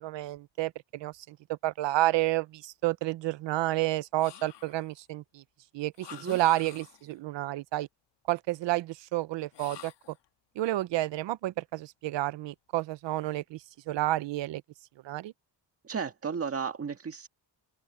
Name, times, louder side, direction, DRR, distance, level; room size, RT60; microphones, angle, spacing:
voice 1, 0.0-5.4 5.7-7.9 8.3-9.9 10.6-13.6 13.9-14.6 15.0-15.3, right 16 dB, 85° right, 0.8 m, -30 dB
sound 1, 4.2-5.0 5.9-7.2 9.5-10.3, left 11 dB, 70° left, 1.8 m, -49 dB
voice 2, 15.8-17.3, right 6 dB, 30° right, 1.8 m, -34 dB
open air
cardioid pair, 140°, 43 cm